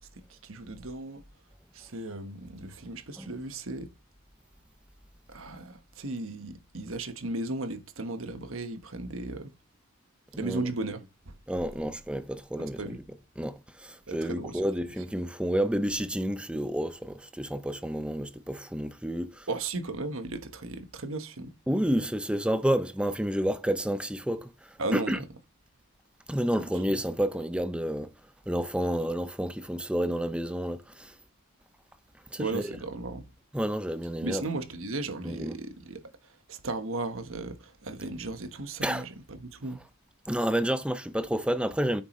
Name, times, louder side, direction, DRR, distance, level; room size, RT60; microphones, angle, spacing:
voice 1, 0.1-1.2 1.7-3.9 5.3-9.5 10.4-11.3 12.6-13.0 14.1-14.6 19.5-21.5 24.8-25.3 26.9-27.0 32.4-33.3 34.2-39.8, right 2 dB, 75° right, 1.3 m, -36 dB
voice 2, 11.5-12.9 13.4-19.5 21.7-25.2 26.3-28.1 28.5-31.1 32.3-32.6 33.5-34.4 35.2-35.6 38.8-39.0 40.3-42.0, equal, 5° right, 0.6 m, -30 dB
9.3 x 7.4 x 3.1 m
head